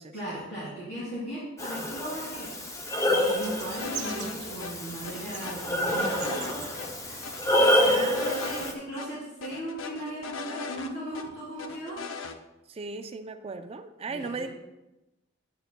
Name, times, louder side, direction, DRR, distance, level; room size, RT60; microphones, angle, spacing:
voice 1, 0.1-2.5 2.8-6.7 7.8-12.0 14.1-14.5, right 1 dB, 60° left, -10 dB, 3.0 m, -37 dB
Breathing, 1.6-8.7, left 1 dB, 15° left, 0.6 m, -28 dB
sound 1, 3.4-8.6, right 7 dB, 55° right, 0.7 m, -45 dB
sound 2, 3.8-4.3 4.6-4.7 5.0-6.5 6.8-6.9 7.2-8.7 9.0-9.1 9.4-11.2 11.6-12.4, left 5 dB, 75° left, 0.6 m, -38 dB
voice 2, 7.9-9.1 12.7-14.5, right 4 dB, 30° right, 8 dB, 0.4 m, -38 dB
9.3 x 9.1 x 2.2 m, 0.98 s
head